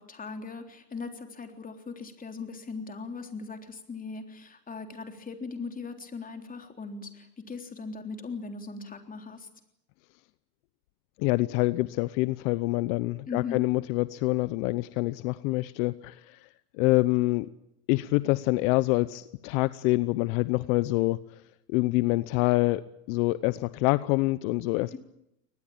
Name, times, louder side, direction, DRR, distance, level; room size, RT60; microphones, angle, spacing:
voice 1, 0.0-9.5 13.3-13.7 24.9-25.0, left 4 dB, 15° left, 5 dB, 3.7 m, -39 dB
voice 2, 11.2-16.5 16.8-17.5 17.9-21.4 21.7-22.8 23.1-25.0, left 21 dB, 60° left, 15 dB, 1.0 m, -26 dB
23.5 x 20.0 x 8.8 m, 0.80 s
supercardioid pair, 115°, 47 cm